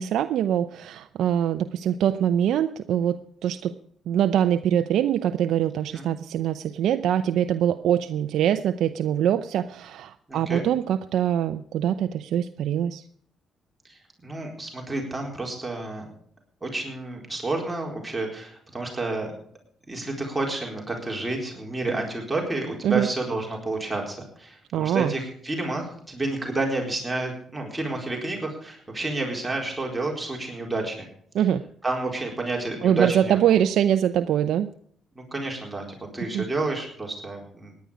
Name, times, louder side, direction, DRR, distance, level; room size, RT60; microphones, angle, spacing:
voice 1, 0.0-3.7 4.1-13.0 22.8-23.1 24.7-25.1 31.3-31.6 32.8-34.7 36.3-36.5, right 10 dB, 75° right, 9 dB, 0.6 m, -23 dB
voice 2, 10.3-10.6 13.8-16.1 16.6-19.3 19.9-31.1 31.8-33.4 35.1-35.8 36.1-37.7, right 2 dB, 15° right, -1 dB, 4.2 m, -30 dB
17.5 x 10.5 x 5.1 m, 0.64 s
cardioid pair, 90°, 0 cm